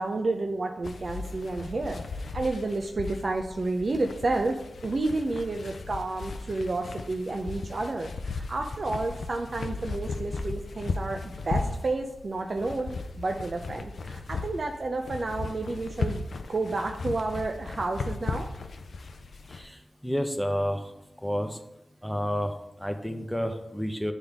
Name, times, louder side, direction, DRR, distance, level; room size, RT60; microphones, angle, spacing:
voice 1, 0.0-16.2 16.5-18.5, right 2 dB, 60° right, 3 dB, 0.5 m, -30 dB
sound 1, 0.8-19.7, left 4 dB, 80° left, 0.5 m, -36 dB
voice 2, 19.5-20.8 21.2-21.6 22.0-24.1, equal, ahead, 6 dB, 0.9 m, -30 dB
9.8 x 3.6 x 3.5 m, 0.90 s
cardioid pair, 40°, 0 cm